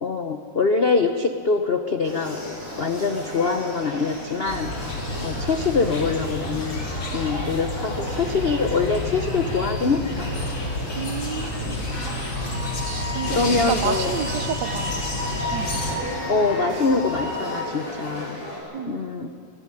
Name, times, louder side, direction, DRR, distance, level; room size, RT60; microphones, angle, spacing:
voice 1, 0.0-4.7 5.2-6.8 7.1-10.3 13.3-14.1 16.3-18.4 18.9-19.3, left 4 dB, 80° left, 6 dB, 0.5 m, -24 dB
sound 1, 2.0-18.6, left 1 dB, 35° left, 7.6 m, -35 dB
sound 2, 4.4-15.9, left 1 dB, 55° left, 3.8 m, -30 dB
voice 2, 11.0-11.8 12.8-15.2 15.5-15.9 18.7-19.0, right 8 dB, 65° right, 11 dB, 1.2 m, -31 dB
Wind instrument woodwind instrument, 12.5-17.6, left 1 dB, 5° right, 5.3 m, -34 dB
20.5 x 15.5 x 10.0 m, 2.5 s
omnidirectional pair, 2.4 m